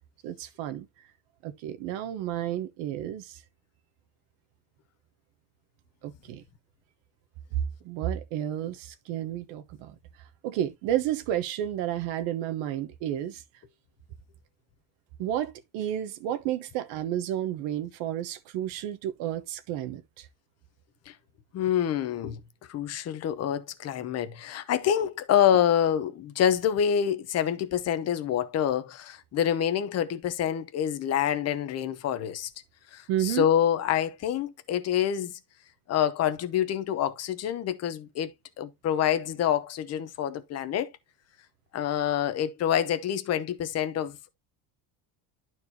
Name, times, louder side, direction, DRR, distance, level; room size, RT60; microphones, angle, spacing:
voice 1, 0.2-0.9 1.4-3.4 6.0-6.4 7.8-9.9 10.4-13.4 15.2-20.3 33.1-33.5, right 11 dB, 65° right, 1.2 m, -31 dB
voice 2, 21.5-22.4 22.7-32.5 32.9-35.3 35.9-38.3 38.6-40.9 41.7-44.2, left 9 dB, 30° left, 0.8 m, -27 dB
11.5 x 4.5 x 2.8 m
cardioid pair, 160°, 50 cm